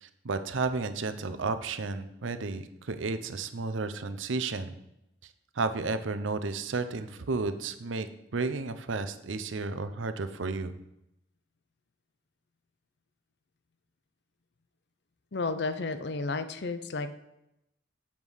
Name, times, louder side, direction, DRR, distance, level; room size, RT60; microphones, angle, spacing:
voice 1, 0.0-4.7 5.5-8.1 8.3-10.7, right 3 dB, 75° right, 10 dB, 0.7 m, -32 dB
voice 2, 15.3-17.1, left 3 dB, 55° left, 11 dB, 0.6 m, -32 dB
7.3 x 5.4 x 6.3 m, 0.85 s
head